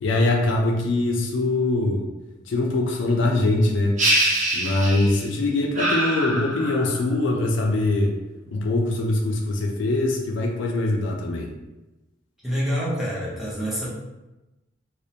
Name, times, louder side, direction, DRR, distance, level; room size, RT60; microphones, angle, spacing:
voice 1, 0.0-2.1 2.5-4.0 4.5-8.1 8.5-11.5, left 2 dB, 70° left, 1 dB, 0.4 m, -22 dB
sound 1, 4.0-5.3 5.8-7.0, right 1 dB, 40° right, 0.6 m, -24 dB
voice 2, 12.4-13.9, equal, ahead, -7 dB, 0.6 m, -26 dB
2.4 x 2.0 x 2.7 m, 1.0 s
head